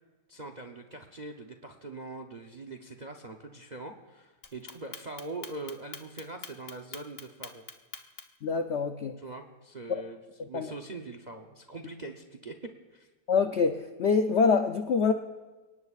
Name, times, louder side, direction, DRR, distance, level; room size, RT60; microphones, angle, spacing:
voice 1, 0.3-7.6 9.2-10.2 10.5-12.6 12.9-13.1, right 3 dB, 50° right, 6 dB, 0.5 m, -42 dB
Clock, 4.4-8.4, left 5 dB, 45° left, 1.2 m, -43 dB
voice 2, 8.4-9.2 9.9-10.0 10.4-10.7 13.3-15.1, left 5 dB, 70° left, 6 dB, 0.6 m, -25 dB
29.0 x 18.5 x 2.4 m, 1.2 s
omnidirectional pair, 1.9 m